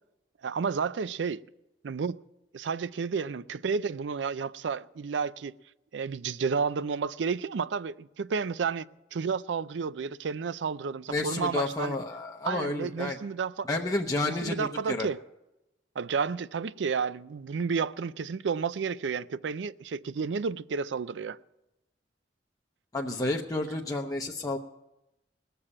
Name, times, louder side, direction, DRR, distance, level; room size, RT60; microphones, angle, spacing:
voice 1, 0.4-1.4 1.8-2.2 2.5-5.5 5.9-12.0 12.4-13.7 14.4-15.2 16.0-21.4, right 5 dB, 90° right, 0.4 m, -31 dB
voice 2, 11.1-13.2 13.7-15.1 22.9-24.6, left 2 dB, 20° left, 0.7 m, -30 dB
19.5 x 6.9 x 8.6 m
head